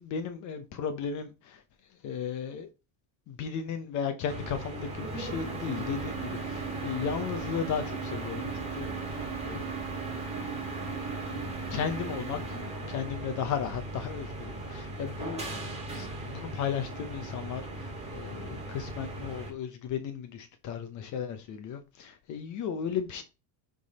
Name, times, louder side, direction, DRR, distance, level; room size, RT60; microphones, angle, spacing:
voice 1, 0.0-1.6 2.0-2.7 3.3-9.6 11.7-15.7 15.9-23.2, left 7 dB, 40° left, 0.9 m, -35 dB
sound 1, 4.3-19.5, right 3 dB, 15° right, 2.4 m, -37 dB
11.5 x 3.9 x 4.2 m
cardioid pair, 165°, 48 cm